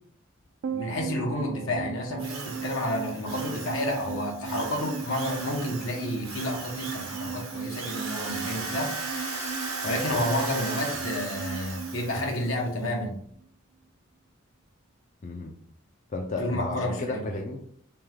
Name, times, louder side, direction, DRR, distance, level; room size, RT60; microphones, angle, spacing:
sound 1, 0.6-13.2 13.4-13.5, right 6 dB, 65° right, 0.3 m, -38 dB
voice 1, 0.7-8.9 9.8-13.2 16.4-17.2, left 1 dB, 80° left, 1 dB, 1.1 m, -30 dB
Drill, 2.2-12.6, right 4 dB, 90° right, 1.0 m, -37 dB
voice 2, 15.2-15.5 16.1-17.6, left 2 dB, 35° left, 2 dB, 0.4 m, -33 dB
3.3 x 3.3 x 3.5 m, 0.66 s
head